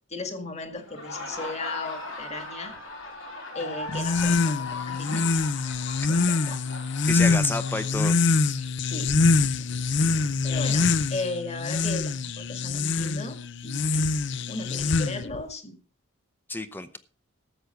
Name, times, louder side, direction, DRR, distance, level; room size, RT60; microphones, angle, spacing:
voice 1, 0.1-2.7 3.5-5.3 6.1-6.6 8.6-9.1 9.5-9.7 10.4-14.1 14.5-15.8, left 2 dB, 30° left, 7 dB, 2.0 m, -36 dB
Laughter, 0.8-8.4, left 3 dB, 70° left, 4.8 m, -38 dB
sound 1, 3.9-15.4, left 4 dB, 55° left, 0.6 m, -25 dB
voice 2, 7.1-8.2 16.5-17.0, left 2 dB, 10° left, 12 dB, 0.7 m, -29 dB
13.0 x 8.0 x 5.8 m, 0.38 s
head